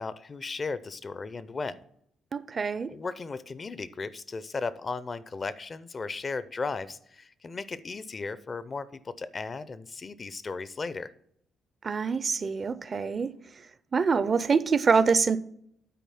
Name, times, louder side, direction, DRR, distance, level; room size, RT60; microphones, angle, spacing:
voice 1, 0.0-1.8 2.9-11.1, left 4 dB, 35° left, 0.4 m, -36 dB
voice 2, 2.3-2.9 11.8-13.3 13.9-15.4, right 5 dB, 40° right, 0.4 m, -25 dB
9.3 x 4.0 x 5.5 m
cardioid pair, 90°, 0 cm